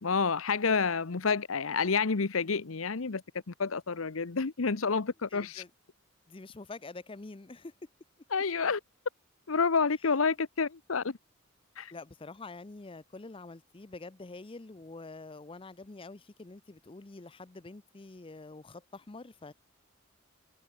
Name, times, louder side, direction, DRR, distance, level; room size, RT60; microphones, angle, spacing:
voice 1, 0.0-3.2 3.5-5.6 8.3-8.8 9.5-11.2 11.8-11.9, left 5 dB, 80° left, 0.9 m, -29 dB
voice 2, 5.3-5.7 6.3-7.7 11.9-19.5, left 3 dB, 25° left, 0.6 m, -46 dB
head